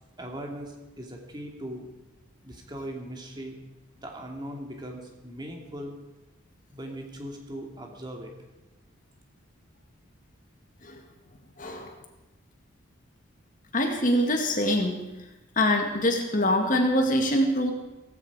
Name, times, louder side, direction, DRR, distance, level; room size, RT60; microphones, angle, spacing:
voice 1, 0.2-1.9 2.4-3.6 4.0-5.9 6.7-8.3, equal, 20° right, 1 dB, 2.5 m, -39 dB
voice 2, 11.6-11.9 13.7-15.0 15.6-17.7, left 1 dB, 40° left, 4 dB, 2.0 m, -24 dB
17.0 x 16.0 x 4.9 m, 1.1 s
head